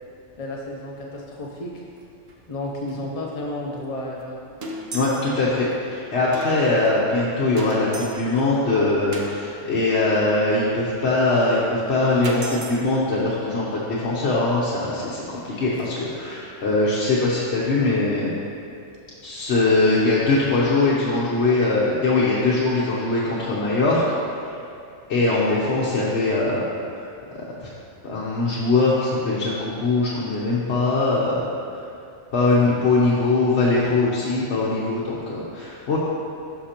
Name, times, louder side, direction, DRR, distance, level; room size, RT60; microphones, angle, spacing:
voice 1, 0.4-1.8 2.5-4.4, left 1 dB, 40° left, -3 dB, 0.5 m, -32 dB
sound 1, 1.4-1.6 1.9-2.0 2.3-2.4 2.9-3.0 3.8-3.9 4.2-4.3 4.6-5.4 5.7-5.8 6.3-6.9 7.6-8.5 9.1-9.3 11.5-11.6 12.2-12.8 14.5-14.6 15.0-16.1 17.2-17.4 18.9-19.0 19.5-19.6 19.8-20.0, right 1 dB, 55° right, 1.0 m, -37 dB
voice 2, 4.9-18.3 19.2-24.0 25.1-26.6 27.6-27.7 28.0-31.4 32.3-36.0, left 2 dB, 60° left, -7 dB, 1.1 m, -21 dB
11.5 x 5.7 x 2.9 m, 2.6 s
omnidirectional pair, 1.3 m